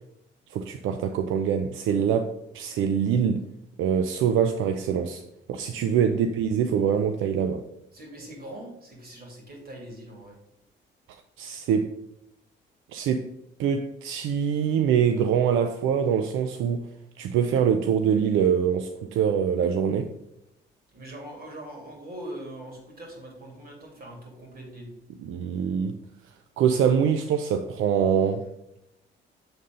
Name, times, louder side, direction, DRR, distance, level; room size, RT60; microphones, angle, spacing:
voice 1, 0.5-3.5 3.8-5.2 5.5-7.6 11.4-11.9 12.9-13.3 13.6-16.9 17.2-20.1 25.2-26.0 26.6-28.5, right 7 dB, 85° right, 0.5 m, -24 dB
voice 2, 7.9-10.4 20.9-24.9, right 1 dB, 50° right, 2.9 m, -42 dB
7.1 x 3.8 x 5.4 m
cardioid pair, 90°, 20 cm